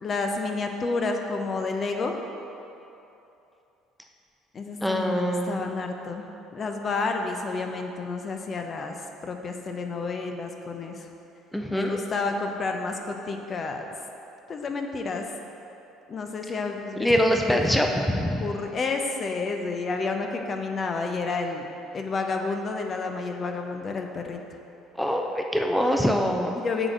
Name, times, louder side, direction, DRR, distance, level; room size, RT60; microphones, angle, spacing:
voice 1, 0.0-2.1 4.5-8.9 9.2-11.1 11.7-13.9 14.5-15.3 16.1-17.6 18.4-21.7 21.9-24.4 26.5-26.9, left 3 dB, 35° left, 4 dB, 0.7 m, -30 dB
voice 2, 4.8-5.7 11.5-12.0 17.0-18.4 25.0-26.5, equal, 5° left, 2 dB, 0.6 m, -24 dB
7.5 x 5.0 x 6.1 m, 2.8 s
figure-of-eight pair, 55°, 0 cm